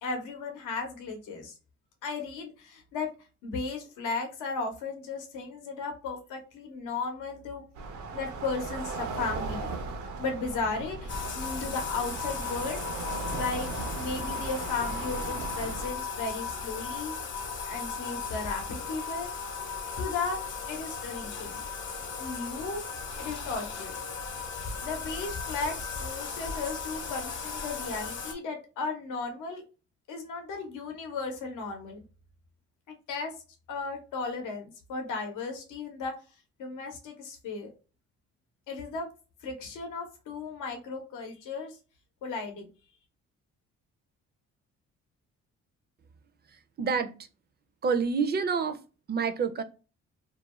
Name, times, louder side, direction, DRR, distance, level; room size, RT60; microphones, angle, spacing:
voice 1, 0.0-1.5 2.0-3.1 3.4-7.6 8.1-9.7 10.2-12.8 13.3-13.7 13.9-17.1 17.6-19.3 20.0-21.6 22.2-22.9 23.2-23.9 24.5-29.6 30.1-32.0 32.9-33.3 33.7-36.1 36.6-37.7 38.7-39.1 39.4-41.8 42.2-42.7, left 4 dB, 90° left, 4 dB, 0.7 m, -35 dB
sound 1, 7.8-15.9, right 3 dB, 75° right, 0.6 m, -37 dB
Bathtub (filling or washing), 11.1-28.3, left 5 dB, 40° left, 0.6 m, -36 dB
voice 2, 46.8-47.1 47.8-48.8 49.1-49.6, right 5 dB, 35° right, 9 dB, 0.4 m, -27 dB
2.4 x 2.2 x 3.0 m, 0.33 s
cardioid pair, 90°, 30 cm